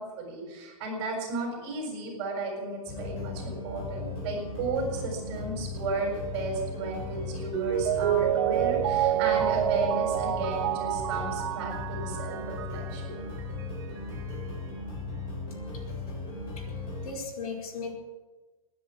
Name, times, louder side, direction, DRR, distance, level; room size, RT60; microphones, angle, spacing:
voice 1, 0.0-13.2, right 3 dB, 35° right, 0 dB, 6.9 m, -34 dB
sound 1, 2.9-17.1, left 3 dB, 25° left, 4.6 m, -37 dB
Mallet percussion, 7.5-13.0 13.4-13.5, right 12 dB, 50° right, 0.6 m, -28 dB
voice 2, 17.0-17.9, left 4 dB, 80° left, 1 dB, 4.5 m, -37 dB
16.5 x 10.0 x 8.6 m, 1.2 s
supercardioid pair, 170°, 18 cm